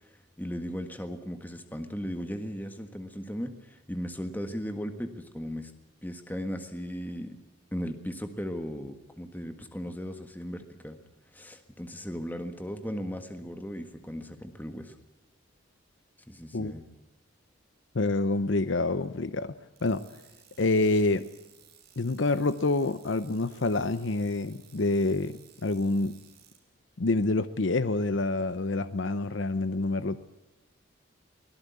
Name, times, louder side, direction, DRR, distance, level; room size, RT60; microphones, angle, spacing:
voice 1, 0.0-5.7 6.0-7.4 7.7-11.0 11.3-15.0 16.3-16.9, equal, 10° left, 7 dB, 1.6 m, -37 dB
voice 2, 17.9-19.5 19.8-20.0 20.6-21.3 22.0-26.2 27.0-30.2, left 2 dB, 70° left, 12 dB, 0.8 m, -27 dB
sound 1, 19.8-26.6, right 10 dB, 50° right, 6.5 m, -58 dB
23.5 x 18.0 x 8.3 m, 1.0 s
head